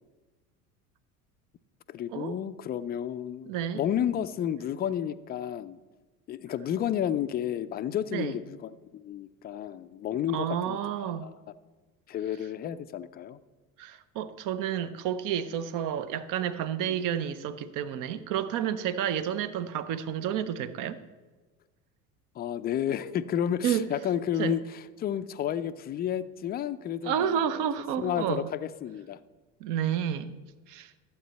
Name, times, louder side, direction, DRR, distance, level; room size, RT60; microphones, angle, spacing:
voice 1, 1.9-5.8 6.3-11.3 12.1-13.4 22.4-27.7 28.0-29.2, left 10 dB, 25° left, 12 dB, 0.4 m, -31 dB
voice 2, 3.5-3.8 8.1-8.4 10.3-11.3 13.8-21.0 23.6-23.8 24.4-24.6 27.0-28.5 29.6-30.4 30.7-30.9, right 9 dB, 50° right, 14 dB, 0.8 m, -30 dB
12.0 x 7.9 x 4.1 m, 1.3 s
hypercardioid pair, 75°, 42 cm